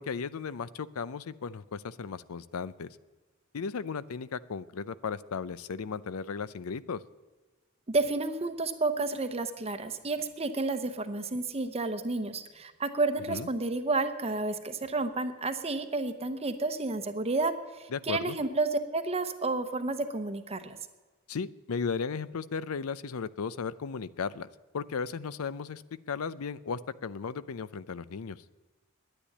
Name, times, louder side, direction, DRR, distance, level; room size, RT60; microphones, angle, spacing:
voice 1, 0.0-3.0 3.5-7.0 13.3-13.5 17.9-18.4 21.3-24.5 24.7-28.4, left 5 dB, 80° left, 17 dB, 0.5 m, -35 dB
voice 2, 7.9-20.8, right 3 dB, 30° right, 9 dB, 0.8 m, -31 dB
10.0 x 10.0 x 9.9 m, 1.3 s
head